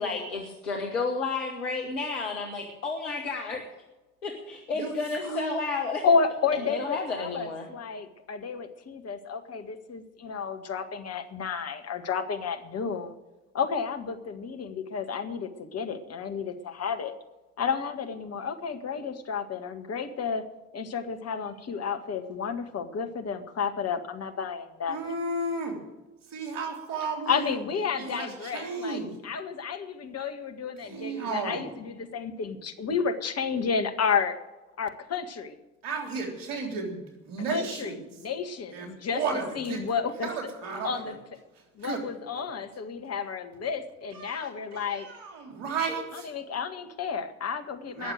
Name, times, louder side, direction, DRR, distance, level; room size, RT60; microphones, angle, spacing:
voice 1, 0.0-3.6 4.2-6.0 6.7-7.7, left 4 dB, 80° left, 0 dB, 1.7 m, -31 dB
voice 2, 4.7-5.6 24.9-25.8 26.3-27.6 27.9-29.2 30.8-31.8 35.8-38.0 38.7-39.8 40.2-41.2 41.5-42.5 44.1-46.3 47.9-48.1, right 4 dB, 65° right, 3 dB, 3.5 m, -34 dB
voice 3, 6.0-13.2 13.5-17.1 17.6-20.4 20.7-25.0 27.3-34.4 34.8-35.6 37.5-39.2 39.6-40.3 40.8-41.1 41.8-45.1 46.3-48.1, left 6 dB, 40° left, 6 dB, 1.9 m, -31 dB
20.5 x 7.2 x 7.9 m, 1.1 s
figure-of-eight pair, 50°, 37 cm